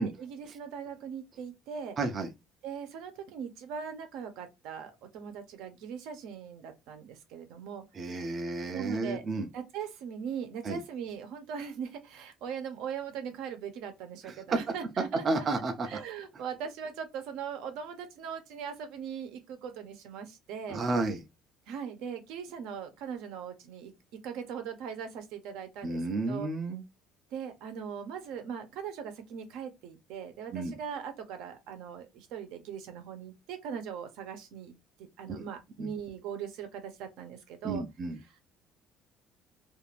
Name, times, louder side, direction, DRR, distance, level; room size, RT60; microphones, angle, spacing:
voice 1, 0.0-2.0 2.6-7.8 8.7-9.2 9.5-20.8 21.7-23.9 24.2-26.0 26.3-26.5 27.3-37.8, right 7 dB, 75° right, 0.8 m, -40 dB
voice 2, 2.0-2.3 8.0-9.5 10.6-10.8 14.2-14.3 15.2-16.0 20.7-21.2 25.8-26.8 30.5-30.7 35.3-35.4 35.8-35.9 37.6-38.2, right 3 dB, 25° right, 0.4 m, -32 dB
2.5 x 2.5 x 3.2 m
cardioid pair, 170°, 0 cm